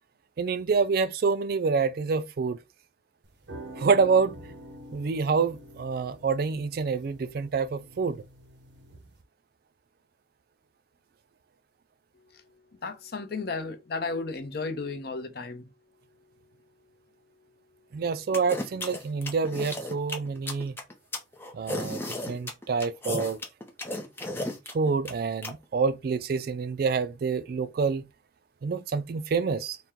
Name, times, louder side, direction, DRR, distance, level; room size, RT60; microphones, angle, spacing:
voice 1, 0.4-2.6 3.8-4.3 4.9-8.2 17.9-20.7 21.5-23.4 24.7-28.0 28.6-29.8, right 5 dB, 55° right, 0.3 m, -27 dB
sound 1, 3.2-9.2, right 1 dB, 70° right, 0.8 m, -46 dB
voice 2, 12.8-15.7, left 3 dB, 55° left, 0.6 m, -34 dB
sound 2, 18.3-25.5, left 1 dB, 10° left, 0.6 m, -34 dB
4.2 x 2.1 x 3.6 m
head